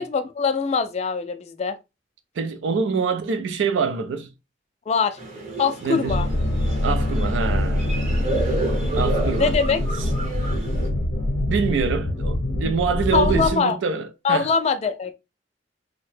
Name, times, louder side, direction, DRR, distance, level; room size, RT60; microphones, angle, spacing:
voice 1, 0.0-1.8 4.9-5.2 5.6-6.3 9.4-9.8 13.1-13.8 14.2-15.2, left 5 dB, 35° left, 0.3 m, -22 dB
voice 2, 2.4-4.3 5.8-6.2 6.8-8.0 8.9-9.5 11.5-14.5, right 5 dB, 75° right, 0.4 m, -25 dB
sound 1, 5.2-10.9, right 2 dB, 40° right, 0.8 m, -31 dB
sound 2, 6.1-13.5, left 1 dB, 75° left, 0.7 m, -24 dB
2.7 x 2.1 x 3.2 m
head